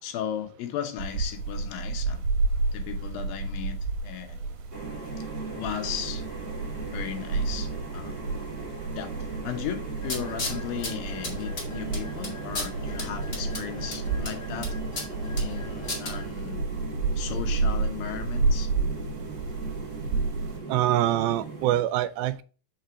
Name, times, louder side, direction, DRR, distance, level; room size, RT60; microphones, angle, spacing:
voice 1, 0.0-2.2 2.7-3.8 4.0-4.4 5.6-6.2 6.9-8.2 9.0-9.1 9.4-14.7 15.4-16.9 17.2-18.7, left 10 dB, 80° left, 2.7 m, -36 dB
sound 1, 1.0-20.6, right 3 dB, 70° right, 3.3 m, -31 dB
sound 2, 4.7-21.8, right 3 dB, 25° right, 1.1 m, -39 dB
sound 3, 10.0-16.2, left 2 dB, 30° left, 1.0 m, -37 dB
voice 2, 20.7-22.4, right 13 dB, 85° right, 2.5 m, -24 dB
5.8 x 5.4 x 4.7 m
omnidirectional pair, 4.2 m